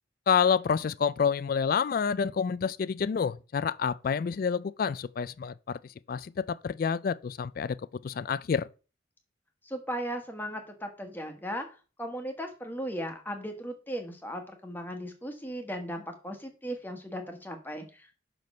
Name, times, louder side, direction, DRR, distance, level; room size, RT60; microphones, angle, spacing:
voice 1, 0.3-5.8 6.1-7.8 8.0-8.6, left 6 dB, 50° left, 0.3 m, -28 dB
voice 2, 9.6-11.7 12.0-18.1, equal, 10° left, 1.2 m, -37 dB
6.0 x 5.2 x 5.3 m
head